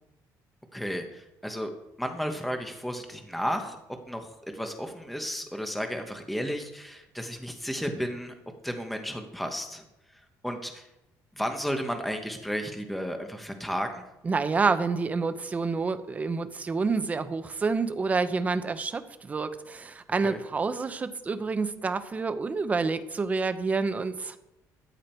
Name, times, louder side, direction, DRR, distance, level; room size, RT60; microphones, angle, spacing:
voice 1, 0.7-1.7 2.0-3.8 4.1-8.3 8.6-9.8 10.4-10.9 11.3-14.0 20.2-20.4, equal, ahead, 5 dB, 1.1 m, -33 dB
voice 2, 14.2-24.4, right 4 dB, 20° right, 10 dB, 0.8 m, -28 dB
14.0 x 9.5 x 4.5 m, 0.91 s
cardioid pair, 155°, 7 cm